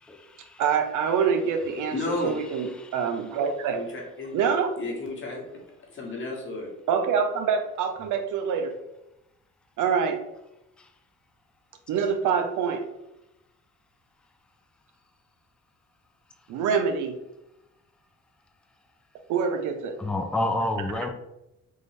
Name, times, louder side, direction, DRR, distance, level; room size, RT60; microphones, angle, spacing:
voice 1, 0.1-0.6 1.1-1.2 1.6-1.9 2.8-3.5 10.8-10.9 20.0-21.1, left 1 dB, 5° left, 4 dB, 0.4 m, -31 dB
voice 2, 0.6-2.0 2.2-3.8 4.3-4.7 6.9-8.7 9.8-10.2 11.9-12.8 16.5-17.1 19.3-19.9, right 6 dB, 80° right, 6 dB, 0.6 m, -25 dB
voice 3, 1.9-2.6 3.7-4.4 4.8-5.4 5.9-6.7, left 2 dB, 40° left, -2 dB, 1.3 m, -32 dB
3.7 x 2.5 x 3.2 m, 0.88 s
cardioid pair, 90°, 30 cm